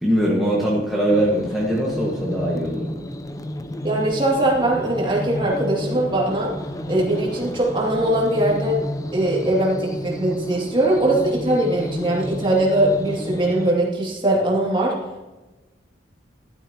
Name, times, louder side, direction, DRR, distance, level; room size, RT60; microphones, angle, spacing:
voice 1, 0.0-2.9, right 1 dB, ahead, -6 dB, 1.6 m, -21 dB
sound 1, 1.1-13.7, left 1 dB, 20° left, 0.5 m, -31 dB
voice 2, 3.8-6.5 6.9-8.8 9.1-15.0, right 1 dB, 25° right, -3 dB, 2.5 m, -21 dB
12.5 x 12.5 x 2.9 m, 1.1 s
head